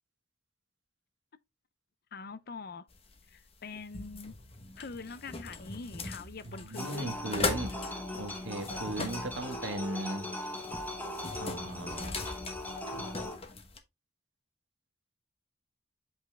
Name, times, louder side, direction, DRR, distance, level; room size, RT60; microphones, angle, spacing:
voice 1, 2.1-2.9 3.3-4.3 4.8-7.2, left 4 dB, 55° left, 0.6 m, -44 dB
sound 1, 2.9-13.8, left 3 dB, 30° left, 1.0 m, -40 dB
voice 2, 6.4-10.3 11.4-12.2, right 1 dB, 80° right, 1.4 m, -38 dB
sound 2, 6.8-13.4, left 1 dB, 10° left, 1.3 m, -39 dB
8.0 x 4.0 x 3.4 m
head